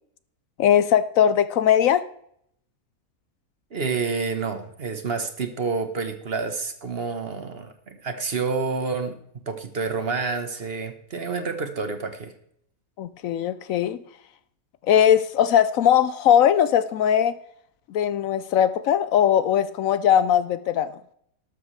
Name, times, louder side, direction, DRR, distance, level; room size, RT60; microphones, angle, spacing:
voice 1, 0.6-2.0 13.0-14.0 14.9-17.3 17.9-20.9, left 9 dB, 70° left, 14 dB, 0.9 m, -20 dB
voice 2, 3.7-9.2 9.5-12.3, right 4 dB, 45° right, 8 dB, 1.2 m, -28 dB
13.0 x 12.0 x 3.2 m, 0.69 s
omnidirectional pair, 1.6 m